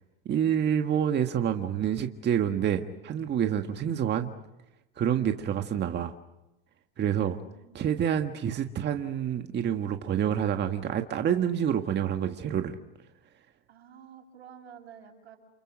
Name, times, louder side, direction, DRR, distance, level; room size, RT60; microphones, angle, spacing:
voice 1, 0.3-4.3 5.0-6.1 7.0-7.4 7.7-12.8, right 9 dB, 35° right, 6 dB, 1.7 m, -27 dB
voice 2, 7.1-8.0 13.7-15.4, right 7 dB, 90° right, 3 dB, 6.5 m, -51 dB
29.0 x 28.5 x 6.4 m, 0.92 s
hypercardioid pair, 105°, 32 cm